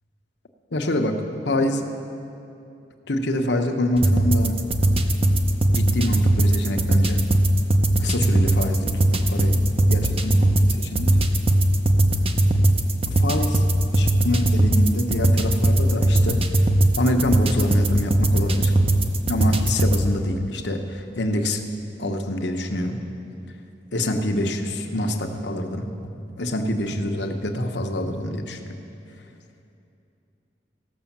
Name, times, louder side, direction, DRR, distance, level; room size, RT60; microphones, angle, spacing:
voice 1, 0.7-1.9 3.1-4.6 5.7-7.3 8.0-11.2 13.2-13.6 13.9-16.4 17.0-18.7 19.3-21.6 22.0-23.0 23.9-25.9 26.4-28.6, left 1 dB, 75° left, 4 dB, 1.0 m, -26 dB
sound 1, 4.0-20.0, right 1 dB, 35° right, 0.7 m, -20 dB
16.5 x 6.3 x 7.2 m, 2.7 s
head